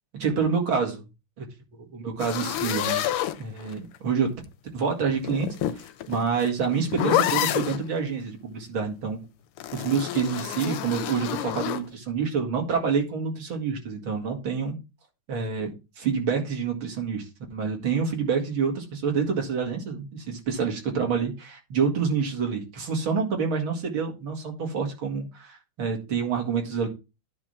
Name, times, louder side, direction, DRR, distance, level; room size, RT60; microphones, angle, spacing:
voice 1, 0.2-1.0 1.4-1.5 1.7-3.1 3.4-4.3 4.7-5.5 6.1-9.2 9.7-14.8 15.3-26.9, right 6 dB, 65° right, 2 dB, 2.8 m, -27 dB
sound 1, 2.2-4.0 5.2-7.8 9.6-11.9, left 12 dB, 90° left, 1.6 m, -28 dB
9.8 x 3.3 x 6.9 m, 0.27 s
omnidirectional pair, 2.4 m